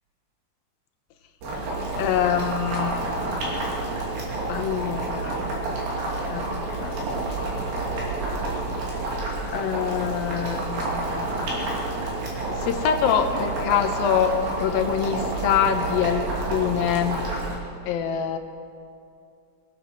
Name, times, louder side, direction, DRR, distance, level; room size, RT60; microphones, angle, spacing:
Boiling, 1.4-17.6, right 2 dB, 70° right, 4.4 m, -29 dB
voice 1, 2.0-3.1 4.5-5.5 6.3-7.0 9.5-11.7 12.5-17.2 17.9-18.4, left 8 dB, 85° left, 6 dB, 2.7 m, -25 dB
22.0 x 8.6 x 6.3 m, 2.4 s
omnidirectional pair, 4.2 m